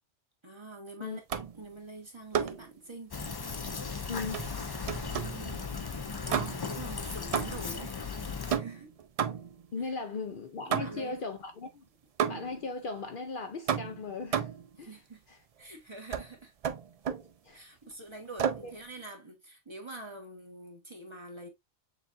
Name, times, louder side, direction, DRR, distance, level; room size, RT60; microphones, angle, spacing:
voice 1, 0.4-3.1 5.1-5.7 6.2-8.9 9.8-9.9 10.7-11.2 14.7-15.2 15.6-16.5 17.5-21.5, right 2 dB, 25° right, 1.1 m, -46 dB
sound 1, 1.3-1.7 2.3-2.7 4.3-5.5 6.3-6.8 7.3-7.8 8.5-9.7 10.7-11.2 12.2-12.7 13.7-14.7 16.1-16.3 16.6-17.3 18.4-18.7, right 8 dB, 65° right, 0.3 m, -32 dB
Fill (with liquid), 3.1-8.6, left 5 dB, 40° left, 0.3 m, -37 dB
voice 2, 4.1-4.4 9.7-11.9 12.3-14.5 14.8-14.9 15.3-15.4 17.1-17.6, left 3 dB, 55° left, 0.7 m, -38 dB
6.7 x 2.4 x 2.4 m
omnidirectional pair, 1.1 m